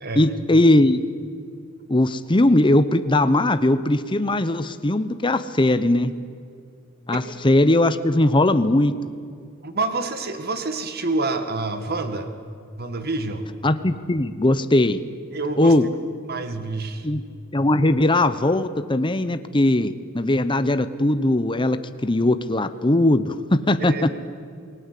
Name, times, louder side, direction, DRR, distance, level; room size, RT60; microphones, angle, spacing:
voice 1, 0.2-1.0 1.9-6.1 7.1-8.9 13.6-15.0 15.6-15.9 17.0-17.2 17.5-23.9, left 1 dB, 25° left, 11 dB, 0.8 m, -19 dB
voice 2, 9.6-12.3 12.7-13.4 15.3-15.8 16.3-17.1 23.8-24.2, right 3 dB, 50° right, 8 dB, 1.9 m, -27 dB
28.5 x 19.5 x 8.4 m, 2.3 s
head